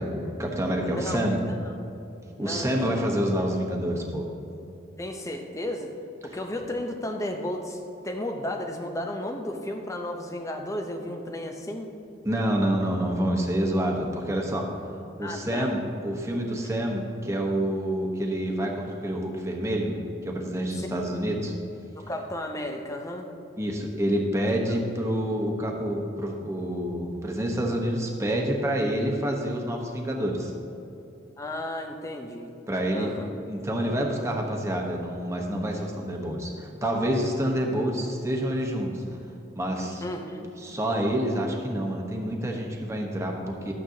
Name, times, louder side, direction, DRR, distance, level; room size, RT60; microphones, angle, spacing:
voice 1, 0.0-1.4 2.4-4.3 12.2-14.7 15.2-19.9 20.2-21.5 23.6-30.5 32.7-33.1 33.5-39.0 39.6-40.0 40.6-43.7, equal, 15° right, 0 dB, 1.0 m, -27 dB
voice 2, 0.9-1.7 2.4-3.0 5.0-5.9 6.2-11.9 15.2-15.7 20.7-20.9 22.1-23.3 24.7-24.8 31.4-32.5 32.9-33.3 40.0-40.5, left 1 dB, 15° left, 4 dB, 0.5 m, -34 dB
12.5 x 9.0 x 2.8 m, 2.8 s
head